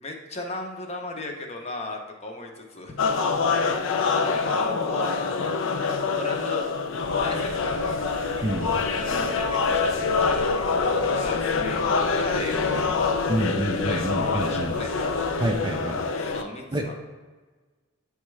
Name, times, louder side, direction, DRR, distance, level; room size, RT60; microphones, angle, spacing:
voice 1, 0.0-3.0 3.5-5.4 6.1-6.7 7.2-7.9 9.2-12.7 13.5-14.9 16.2-16.9, left 2 dB, 30° left, 2 dB, 0.7 m, -36 dB
sound 1, 3.0-16.4, left 4 dB, 70° left, 0.4 m, -25 dB
sound 2, 7.0-15.6, right 2 dB, 75° right, 0.6 m, -42 dB
voice 2, 13.3-14.7 15.4-16.0 16.7-16.9, right 1 dB, 20° right, 3 dB, 0.4 m, -27 dB
8.5 x 3.5 x 3.2 m, 1.4 s
head